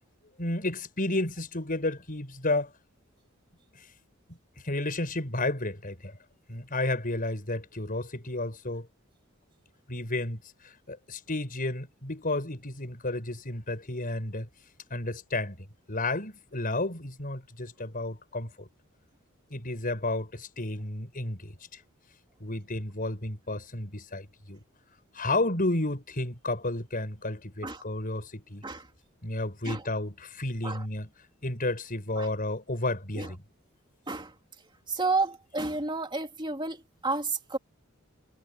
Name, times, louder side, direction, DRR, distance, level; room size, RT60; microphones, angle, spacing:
voice 1, 0.4-2.7 3.7-3.9 4.3-4.4 4.6-6.2 6.5-8.9 9.9-14.5 14.9-18.7 19.5-21.8 22.4-24.6 25.1-28.6 29.2-31.1 31.4-33.4, left 2 dB, 40° left, 5.6 m, -32 dB
voice 2, 34.9-37.6, right 3 dB, 25° right, 2.5 m, -31 dB
head